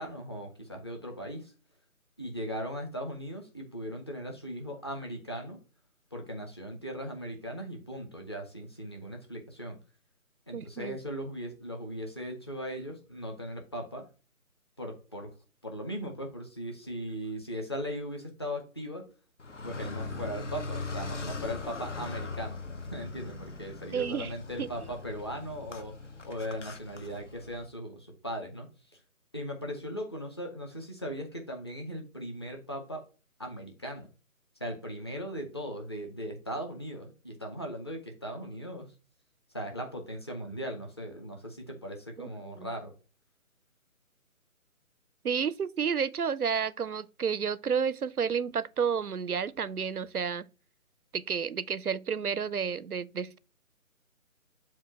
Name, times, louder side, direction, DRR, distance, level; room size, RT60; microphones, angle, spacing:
voice 1, 0.0-1.5 2.2-5.6 6.1-9.8 10.5-14.0 14.8-15.3 15.6-19.1 19.6-22.6 22.9-25.9 26.2-29.0 29.3-33.0 33.4-34.1 34.6-38.9 39.5-42.9, equal, 20° left, 0.7 m, -38 dB
voice 2, 10.5-11.0 23.9-24.3 24.6-24.7 42.2-42.7 45.2-50.5 51.1-53.4, right 6 dB, 90° right, 0.6 m, -31 dB
Car, 19.4-27.7, left 3 dB, 55° left, 1.1 m, -40 dB
7.5 x 2.7 x 5.5 m
figure-of-eight pair, 150°, 43 cm